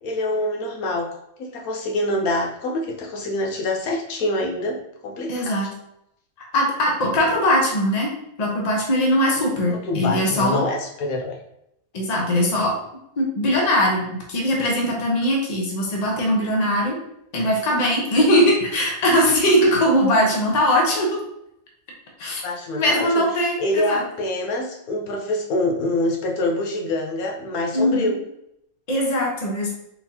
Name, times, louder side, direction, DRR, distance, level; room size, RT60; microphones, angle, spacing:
voice 1, 0.0-1.1 1.4-4.8 5.0-5.6 9.7-11.4 22.4-28.2, left 1 dB, 80° left, 1 dB, 1.2 m, -25 dB
voice 2, 5.3-5.7 6.5-8.1 8.4-10.7 11.9-12.7 13.2-17.0 17.3-21.2 22.2-22.4 22.7-24.0 27.7-28.1 28.9-29.7, equal, 30° left, -1 dB, 0.9 m, -20 dB
4.4 x 3.8 x 2.8 m, 0.79 s
omnidirectional pair, 1.5 m